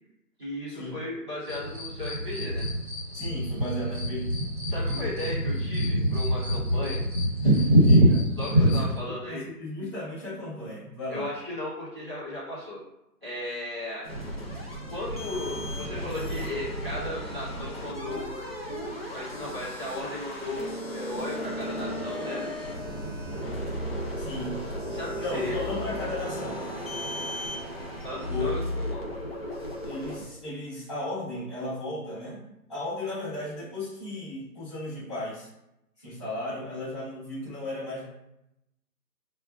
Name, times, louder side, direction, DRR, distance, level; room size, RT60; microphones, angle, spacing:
voice 1, 0.4-2.7 4.7-7.0 8.4-9.5 11.1-12.8 13.2-14.0 14.9-18.5 19.1-22.4 24.9-25.7 28.0-28.6 28.9-29.0, left 1 dB, 15° right, -11 dB, 1.1 m, -35 dB
sound 1, 1.5-9.0, equal, 35° right, 0.8 m, -24 dB
voice 2, 3.1-4.3 7.8-8.3 8.6-8.8 9.2-11.3 24.2-24.6 25.2-26.6 28.3-28.5 29.8-35.5 36.0-38.1, left 1 dB, 15° left, -13 dB, 1.4 m, -35 dB
sound 2, 14.0-30.2, equal, 40° left, 0.6 m, -35 dB
4.6 x 2.3 x 2.4 m, 0.86 s
figure-of-eight pair, 170°, 48 cm